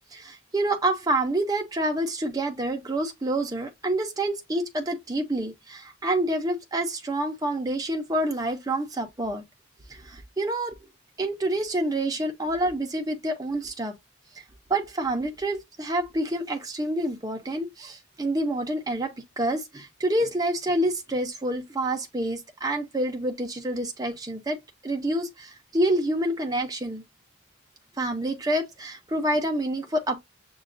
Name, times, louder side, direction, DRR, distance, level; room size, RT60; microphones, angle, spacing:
voice 1, 0.1-9.4 9.9-10.8 11.2-13.9 14.3-14.4 14.7-24.6 24.8-27.0 28.0-30.2, right 1 dB, 20° right, 0.5 m, -27 dB
6.4 x 2.2 x 2.5 m
head